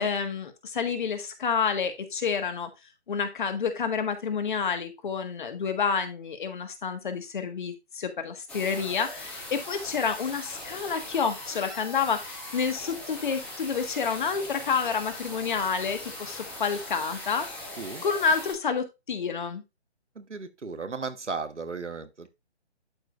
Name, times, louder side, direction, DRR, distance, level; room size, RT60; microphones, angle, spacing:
voice 1, 0.0-2.7 3.1-17.7 18.0-19.6, left 6 dB, 45° left, 1.6 m, -29 dB
sound 1, 8.5-18.5, left 1 dB, 5° left, 0.9 m, -40 dB
voice 2, 20.1-22.3, right 4 dB, 85° right, 1.3 m, -35 dB
11.5 x 4.9 x 2.5 m
figure-of-eight pair, 150°, 34 cm